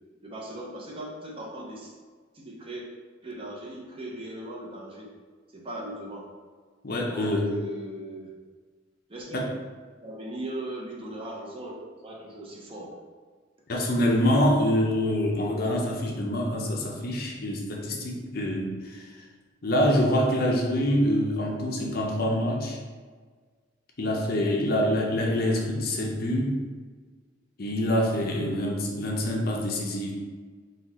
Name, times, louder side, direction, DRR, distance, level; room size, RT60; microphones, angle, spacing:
voice 1, 0.2-1.9 2.3-2.8 3.2-5.1 5.5-6.3 7.0-8.3 9.1-9.4 9.9-11.7 12.0-13.0 24.7-25.0 28.5-28.7, right 1 dB, 30° right, -2 dB, 0.7 m, -39 dB
voice 2, 6.8-7.5 9.3-9.5 13.7-19.1 19.6-22.8 24.0-26.6 27.6-30.1, equal, 50° left, -1 dB, 0.6 m, -25 dB
4.1 x 2.4 x 4.1 m, 1.5 s
head